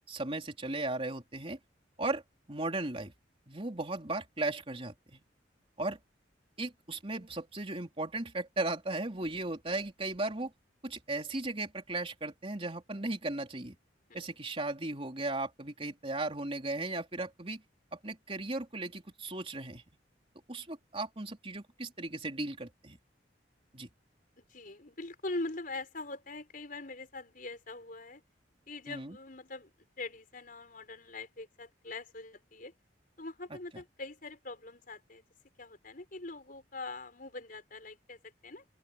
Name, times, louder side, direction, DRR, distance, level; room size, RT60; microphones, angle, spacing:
voice 1, 0.1-1.6 2.0-2.2 2.5-3.1 3.5-5.2 5.8-6.0 6.6-10.5 10.8-13.8 14.1-17.6 17.9-19.8 20.5-23.0 23.7-23.9 28.9-29.1, right 2 dB, 30° right, 3.5 m, -36 dB
voice 2, 24.4-28.2 28.7-32.7 33.2-35.2 35.6-38.6, left 2 dB, 50° left, 5.0 m, -43 dB
open air
head